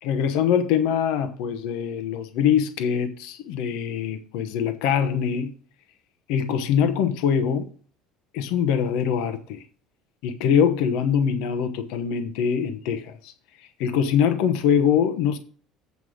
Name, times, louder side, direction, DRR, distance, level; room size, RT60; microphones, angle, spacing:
voice 1, 0.0-5.5 6.3-7.7 8.3-9.6 10.2-13.3 13.8-15.4, left 8 dB, 75° left, 1.0 m, -23 dB
8.3 x 5.5 x 6.3 m
cardioid pair, 160°, 0 cm